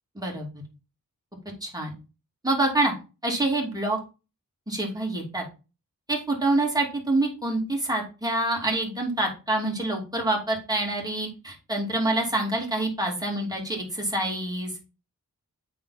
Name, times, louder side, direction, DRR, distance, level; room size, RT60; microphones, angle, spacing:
voice 1, 1.6-1.9 2.4-2.9 3.2-4.0 4.7-5.4 6.1-14.7, right 2 dB, 10° right, -1 dB, 2.7 m, -26 dB
8.7 x 3.3 x 4.2 m, 0.31 s
wide cardioid pair, 70°, 35 cm